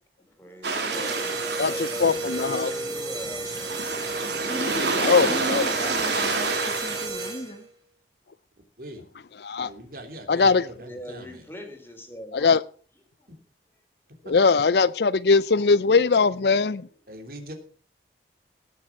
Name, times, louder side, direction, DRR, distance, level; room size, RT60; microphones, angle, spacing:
voice 1, 0.3-3.8 10.8-12.6 13.2-13.4 16.8-16.9, equal, 15° left, 3.5 m, -41 dB
sound 1, 0.6-7.1, right 3 dB, 80° right, 3.2 m, -29 dB
sound 2, 0.9-7.7, right 3 dB, 25° right, 4.7 m, -33 dB
voice 2, 1.6-2.7 5.1-5.7 9.4-9.7 10.3-10.6 12.3-12.6 14.3-16.9, left 4 dB, 65° left, 0.5 m, -21 dB
voice 3, 4.4-7.7, equal, 30° left, 1.5 m, -36 dB
voice 4, 9.6-11.4 14.2-14.3 17.1-17.5, right 1 dB, 55° right, 3.2 m, -41 dB
19.5 x 7.5 x 6.1 m
head